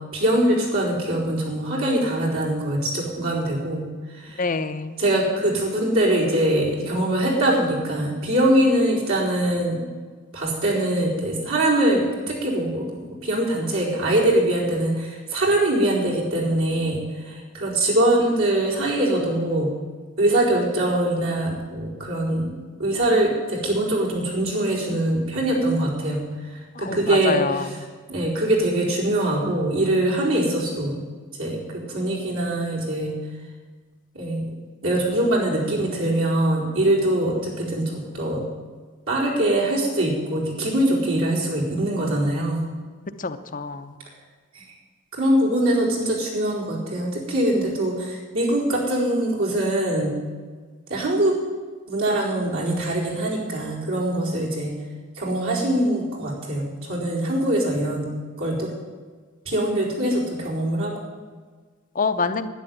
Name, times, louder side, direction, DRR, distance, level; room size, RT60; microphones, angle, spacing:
voice 1, 0.1-3.9 4.1-4.5 5.0-9.9 10.3-19.7 20.2-22.5 22.8-31.0 31.4-33.2 34.1-34.4 34.8-38.4 39.1-42.6 44.5-44.6 45.1-50.1 50.9-51.4 51.9-54.7 55.2-58.1 58.4-58.7 59.4-60.9, right 1 dB, 75° right, -4 dB, 4.5 m, -23 dB
voice 2, 4.4-5.0 26.8-27.0 27.3-27.6 43.2-43.9 62.0-62.5, left 4 dB, 40° left, 8 dB, 0.7 m, -25 dB
11.5 x 9.8 x 9.1 m, 1.5 s
head